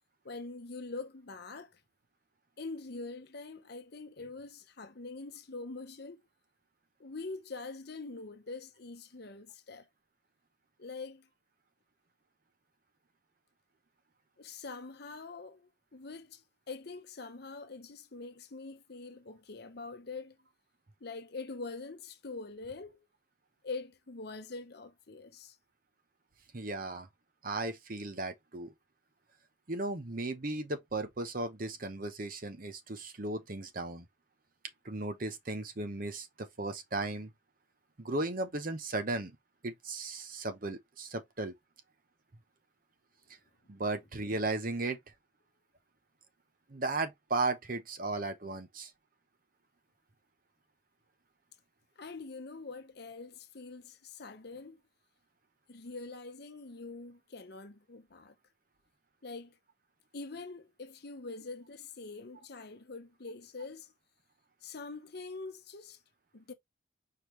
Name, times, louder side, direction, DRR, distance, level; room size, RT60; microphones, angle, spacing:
voice 1, 0.2-1.8 2.6-6.3 7.0-9.9 10.8-11.3 14.4-20.4 21.0-23.1 23.6-25.6 52.0-54.8 55.7-58.3 59.2-59.6 60.1-63.9 64.6-66.0 66.3-66.5, left 3 dB, 50° left, 0.8 m, -44 dB
voice 2, 26.5-27.1 27.4-28.7 29.7-34.0 34.8-37.3 38.0-39.4 39.6-41.5 43.7-45.0 46.7-48.9, right 2 dB, 45° right, 0.8 m, -36 dB
4.8 x 3.5 x 3.0 m
head